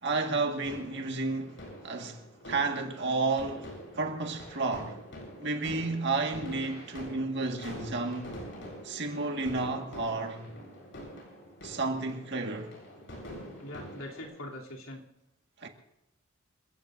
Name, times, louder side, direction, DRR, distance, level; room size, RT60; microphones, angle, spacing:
voice 1, 0.0-5.0 5.4-8.4 8.8-10.5 11.6-12.7 15.6-15.7, right 3 dB, 55° right, 1.8 m, -32 dB
sound 1, 0.6-14.2, equal, 60° left, 7.7 m, -45 dB
voice 2, 13.6-15.0, left 1 dB, 85° left, 3.1 m, -42 dB
28.0 x 15.0 x 2.7 m
head